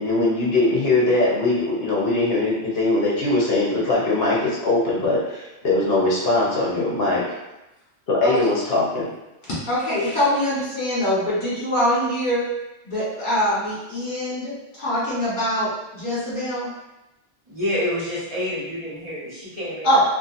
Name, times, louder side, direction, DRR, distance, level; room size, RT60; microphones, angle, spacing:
voice 1, 0.0-7.4 8.1-9.1, left 2 dB, 65° left, -5 dB, 0.8 m, -21 dB
voice 2, 9.7-12.4 12.8-15.7 15.9-16.7 19.8-20.0, equal, 45° left, -10 dB, 1.3 m, -23 dB
voice 3, 17.5-20.0, left 1 dB, 30° right, -11 dB, 1.4 m, -28 dB
2.6 x 2.5 x 2.5 m, 0.96 s
omnidirectional pair, 1.2 m